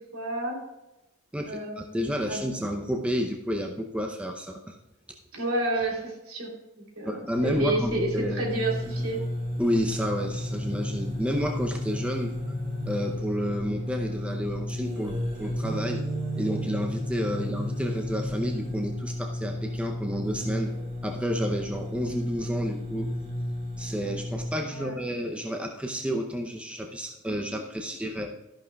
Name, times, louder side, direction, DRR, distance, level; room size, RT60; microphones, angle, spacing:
voice 1, 0.1-0.6 1.4-2.4 5.3-9.2 17.2-17.5 24.7-25.0, right 2 dB, 70° right, -1 dB, 3.3 m, -31 dB
voice 2, 1.3-4.8 7.0-8.4 9.6-12.3 12.9-16.0 16.4-20.7 21.0-23.1 23.8-28.4, equal, 5° right, 2 dB, 0.6 m, -30 dB
sound 1, 7.3-24.5, left 1 dB, 30° right, 3.8 m, -32 dB
13.0 x 11.0 x 2.3 m, 0.97 s
head